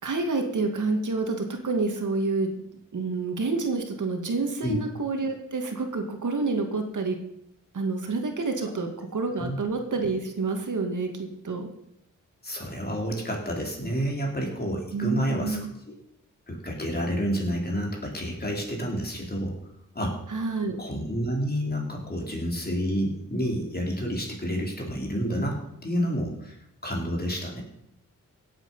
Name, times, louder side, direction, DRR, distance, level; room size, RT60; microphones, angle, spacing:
voice 1, 0.0-2.6 2.9-7.2 7.7-11.7 14.9-15.7 20.3-20.8, right 3 dB, 70° right, 4 dB, 2.2 m, -28 dB
voice 2, 12.4-15.6 16.5-19.6 19.9-20.2 20.8-26.6 26.8-27.6, equal, 30° left, 0 dB, 4.0 m, -29 dB
17.0 x 8.2 x 5.6 m, 0.76 s
wide cardioid pair, 85°, 32 cm